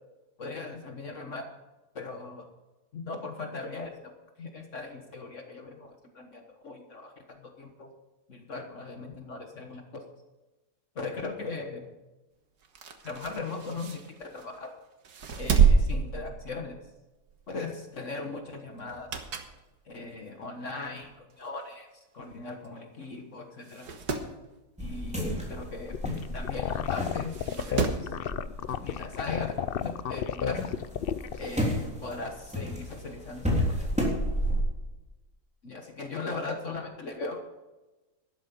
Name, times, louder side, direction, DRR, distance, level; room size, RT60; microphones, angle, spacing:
voice 1, 0.4-1.5 1.9-2.5 2.9-4.1 4.4-7.9 8.3-10.0 10.9-11.9 13.0-14.7 15.4-16.8 17.5-19.1 19.8-21.9 22.1-23.9 24.8-25.9 26.3-28.1 28.8-30.8 31.4-33.9 35.6-37.4, left 3 dB, 50° left, 4 dB, 1.6 m, -39 dB
sound 1, 12.6-14.6 15.0-16.9 17.3-17.5 18.8-19.6 20.1-20.2 21.1-21.2 21.4-21.5 21.7-21.8 22.6-22.8 23.1-23.2 23.6-24.3 26.2-26.3 27.3-28.1 29.4-29.5, right 6 dB, 80° right, 1.9 m, -28 dB
sound 2, 24.8-29.9 30.2-34.6, equal, 5° right, 3.4 m, -32 dB
sound 3, 25.9-31.5, left 9 dB, 80° left, 0.5 m, -31 dB
12.5 x 11.5 x 5.3 m, 1.1 s
omnidirectional pair, 1.7 m